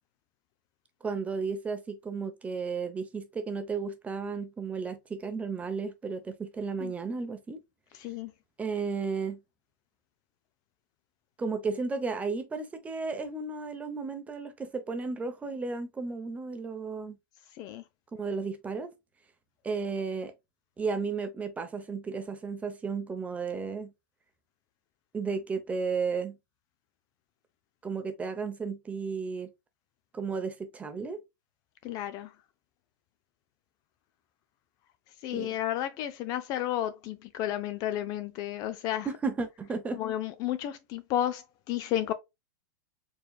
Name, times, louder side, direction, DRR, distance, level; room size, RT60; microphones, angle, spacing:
voice 1, 1.0-7.6 8.6-9.4 11.4-17.2 18.1-18.9 19.6-20.3 20.8-23.9 25.1-26.4 27.8-29.5 30.1-31.2 35.3-35.5 39.0-40.0, right 4 dB, 10° right, 0.8 m, -33 dB
voice 2, 8.0-8.3 17.6-17.8 31.8-32.3 35.2-39.1 40.0-42.1, left 12 dB, 35° left, 0.4 m, -32 dB
4.6 x 3.2 x 2.3 m
hypercardioid pair, 140°, 11 cm